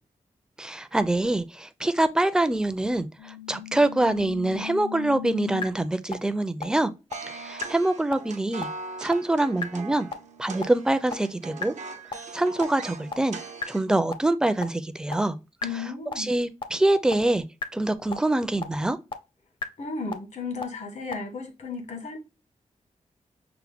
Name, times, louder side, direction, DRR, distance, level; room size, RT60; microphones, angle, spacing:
voice 1, 0.6-6.9 7.3-8.7 9.0-10.1 10.4-11.7 12.3-13.4 13.7-15.4 16.2-17.4 17.7-19.0, right 2 dB, 5° right, 0.4 m, -25 dB
sound 1, 3.2-5.6 6.1-6.2 6.6-6.7 7.1-7.2 7.6-7.7 8.1-8.2 8.6-8.7 9.1-9.2 9.6-9.7 10.1-10.2 10.6-10.7 11.1-11.2 11.6-11.7 12.1-12.2 12.6-12.7 13.1-13.2 13.6-13.7 14.1-14.2 14.6-14.7 15.1-15.2 15.6-15.7 16.1-16.2 16.6-16.7 17.1-17.2 17.6-17.7 18.1-18.2 18.6-18.7 19.1-19.2 19.6-19.7 20.1-20.2 20.6-20.7 21.1-21.2, left 6 dB, 45° left, 0.6 m, -33 dB
sound 2, 7.1-13.9, right 4 dB, 75° right, 0.7 m, -40 dB
voice 2, 15.6-16.3 19.8-22.2, left 4 dB, 80° left, 1.4 m, -34 dB
5.8 x 2.1 x 3.4 m
wide cardioid pair, 115°, 12 cm